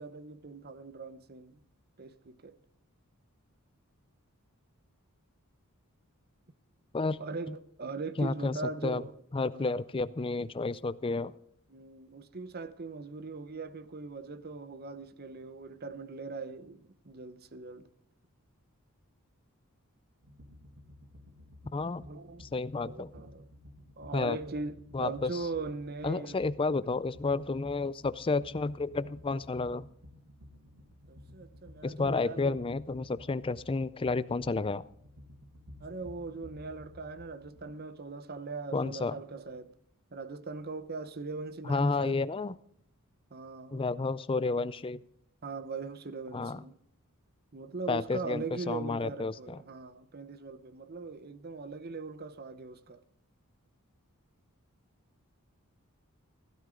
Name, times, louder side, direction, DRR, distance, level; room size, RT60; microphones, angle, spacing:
voice 1, 0.0-1.6 2.0-2.6 7.2-9.1 9.5-9.7 11.7-17.9 22.0-22.5 22.8-23.5 24.0-26.4 31.1-32.6 35.8-39.7 40.1-42.2 43.3-43.8 45.4-46.8 47.5-53.0, right 4 dB, 45° right, 0.8 m, -40 dB
voice 2, 8.2-8.6 8.8-9.0 9.3-11.3 21.7-22.0 22.4-23.1 24.1-24.4 24.9-25.3 26.0-29.9 31.8-34.8 38.7-39.1 41.7-42.5 43.7-45.0 46.3-46.6 47.9-49.6, left 3 dB, 25° left, 0.4 m, -31 dB
sound 1, 20.2-37.8, left 1 dB, 70° right, 2.3 m, -54 dB
16.5 x 12.0 x 3.8 m
head